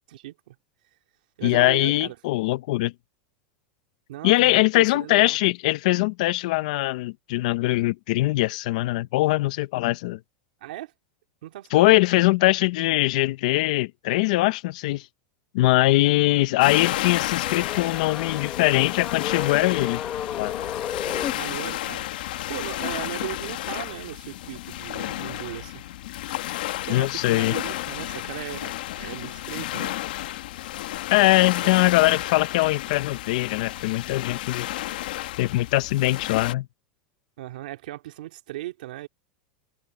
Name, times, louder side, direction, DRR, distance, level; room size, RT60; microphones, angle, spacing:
voice 1, 0.1-0.6 1.4-2.2 4.1-5.4 10.6-10.9 11.4-12.0 21.1-25.8 26.7-30.0 31.6-32.2 37.4-39.1, right 15 dB, 70° right, 2.6 m, -38 dB
voice 2, 1.4-2.9 4.2-10.2 11.7-15.1 15.5-20.0 20.4-20.5 26.9-27.5 31.1-34.7 35.4-36.7, left 19 dB, 50° left, 0.7 m, -22 dB
sound 1, 16.6-36.5, left 15 dB, 70° left, 1.5 m, -32 dB
sound 2, 17.4-21.3, left 9 dB, 20° left, 0.8 m, -33 dB
supercardioid pair, 175°, 5 cm